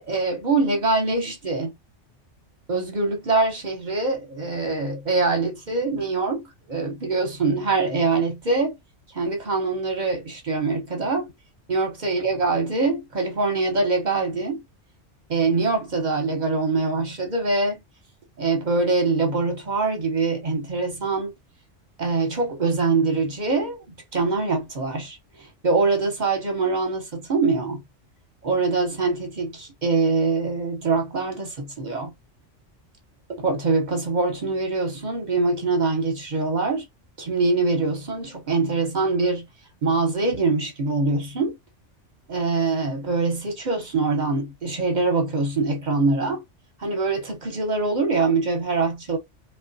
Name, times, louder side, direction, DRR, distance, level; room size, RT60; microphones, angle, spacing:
voice 1, 0.0-1.7 2.7-6.4 6.7-8.8 9.1-11.3 11.7-14.6 15.3-17.8 18.4-21.3 22.0-23.8 24.1-25.2 25.6-27.8 28.4-32.1 33.4-36.8 37.2-39.4 39.8-41.5 42.3-46.4 46.8-49.2, right 3 dB, 45° right, 0.8 m, -23 dB
2.9 x 2.2 x 2.6 m
omnidirectional pair, 1.2 m